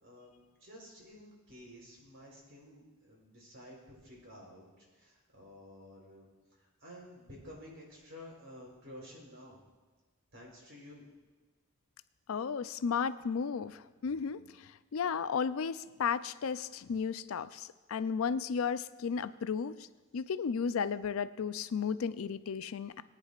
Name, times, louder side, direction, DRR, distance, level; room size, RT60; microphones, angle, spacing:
voice 1, 0.0-6.3 6.6-9.6 10.3-11.1, left 1 dB, 60° right, -2 dB, 3.8 m, -52 dB
voice 2, 12.3-19.9 20.1-23.0, left 6 dB, 80° left, 14 dB, 0.4 m, -34 dB
19.0 x 9.8 x 2.4 m, 1.3 s
head